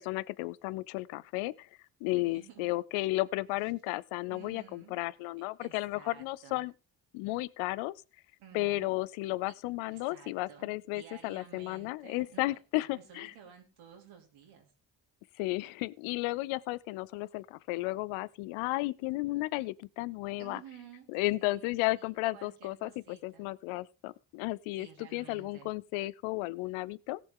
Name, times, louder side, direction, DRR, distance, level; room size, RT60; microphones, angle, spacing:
voice 1, 0.0-1.7 2.0-6.7 7.1-7.9 8.5-13.3 15.4-20.6 21.1-27.2, left 20 dB, 85° left, 0.6 m, -34 dB
voice 2, 2.2-2.7 4.3-5.0 5.6-6.6 8.4-8.9 9.9-12.6 13.1-14.7 20.4-21.1 21.4-22.1 22.3-23.5 24.8-25.7, right 8 dB, 85° right, 3.0 m, -53 dB
17.0 x 6.9 x 3.7 m
supercardioid pair, 50°, 47 cm